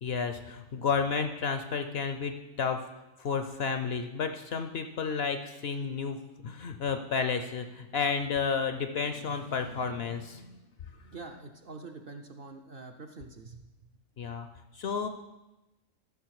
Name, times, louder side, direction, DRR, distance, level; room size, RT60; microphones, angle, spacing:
voice 1, 0.0-2.8 3.2-6.2 6.4-10.5 14.2-14.5 14.7-15.1, left 5 dB, 60° left, 7 dB, 0.7 m, -31 dB
voice 2, 11.1-13.6, right 3 dB, 55° right, 4 dB, 0.7 m, -45 dB
13.5 x 6.3 x 4.7 m, 1.0 s
omnidirectional pair, 1.4 m